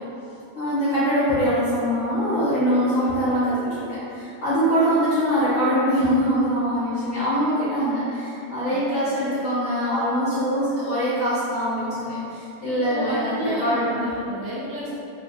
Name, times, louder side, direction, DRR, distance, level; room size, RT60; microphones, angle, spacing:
voice 1, 0.5-14.0, equal, 60° left, -13 dB, 0.7 m, -23 dB
voice 2, 12.6-14.9, equal, 75° right, -7 dB, 1.2 m, -31 dB
3.1 x 2.1 x 2.6 m, 2.8 s
omnidirectional pair, 1.9 m